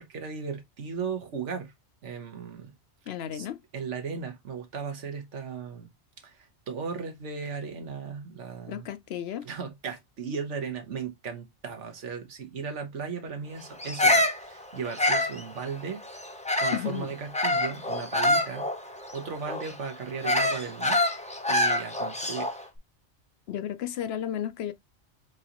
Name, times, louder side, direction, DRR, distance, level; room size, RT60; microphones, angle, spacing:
voice 1, 0.0-1.7 2.0-2.7 3.3-3.5 3.7-5.9 6.2-8.9 9.4-16.0 16.6-21.0 21.5-22.5, right 5 dB, 90° right, 1.5 m, -36 dB
voice 2, 3.1-3.6 8.7-9.5 16.7-17.1 23.5-24.7, left 10 dB, 70° left, 0.8 m, -33 dB
Bird vocalization bird call bird song, 13.8-16.9 17.3-22.6, left 1 dB, 10° left, 0.5 m, -26 dB
4.6 x 3.9 x 2.9 m
omnidirectional pair, 1.2 m